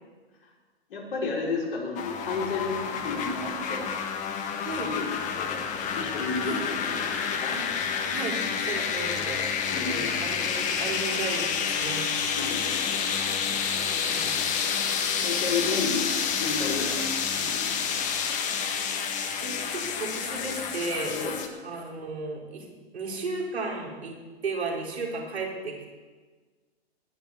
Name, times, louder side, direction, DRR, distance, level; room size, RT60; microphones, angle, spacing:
voice 1, 0.9-3.9 4.4-5.7 5.9-7.5 9.7-10.3 12.3-13.2 13.6-13.8 15.2-16.1 16.4-17.0 17.3-18.3 21.1-21.4, left 4 dB, 60° left, -3 dB, 5.4 m, -33 dB
sound 1, 2.0-21.5, left 6 dB, 25° left, 1.4 m, -29 dB
voice 2, 8.1-12.1 13.8-14.4 19.4-21.2 21.6-22.7 22.9-24.2 24.4-25.9, right 3 dB, 80° right, -1 dB, 4.5 m, -34 dB
20.0 x 7.0 x 7.2 m, 1.4 s
hypercardioid pair, 130°, 32 cm